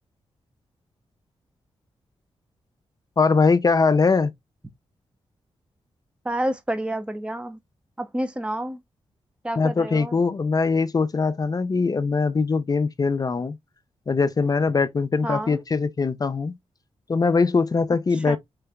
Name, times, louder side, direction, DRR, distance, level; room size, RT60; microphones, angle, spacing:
voice 1, 3.2-4.3 9.6-13.6 14.1-16.5 17.1-18.4, left 4 dB, 35° left, 0.5 m, -21 dB
voice 2, 6.2-7.6 8.0-8.8 9.4-10.2 15.2-15.6 18.3-18.4, right 1 dB, 10° right, 0.7 m, -29 dB
3.8 x 3.4 x 3.4 m
cardioid pair, 85°, 11 cm